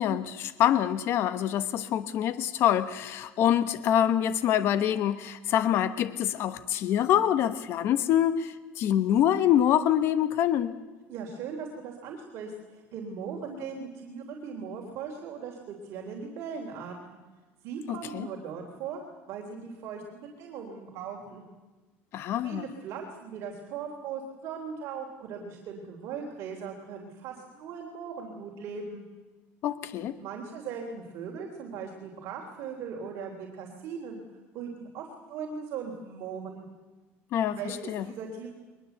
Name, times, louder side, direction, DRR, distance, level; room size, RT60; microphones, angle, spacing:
voice 1, 0.0-10.7 17.9-18.3 22.1-22.7 29.6-30.2 37.3-38.0, left 10 dB, 50° left, 12 dB, 1.1 m, -25 dB
voice 2, 11.1-17.2 17.6-19.0 19.3-21.4 22.4-29.0 30.2-34.2 34.5-36.7 37.5-38.5, right 6 dB, 55° right, 0 dB, 3.4 m, -39 dB
22.5 x 21.5 x 8.0 m, 1.2 s
cardioid pair, 155°, 5 cm